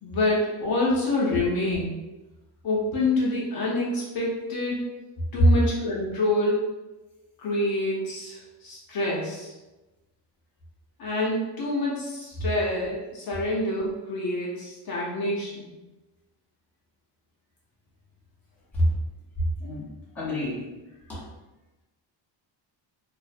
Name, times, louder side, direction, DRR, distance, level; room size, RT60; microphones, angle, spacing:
voice 1, 0.0-1.9 2.6-4.8 5.3-6.7 7.4-9.5 11.0-15.7, left 2 dB, 50° left, -5 dB, 0.6 m, -27 dB
voice 2, 20.1-20.7 21.1-21.2, equal, 5° left, -10 dB, 0.7 m, -27 dB
2.5 x 2.0 x 2.5 m, 1.1 s
cardioid pair, 160°, 45 cm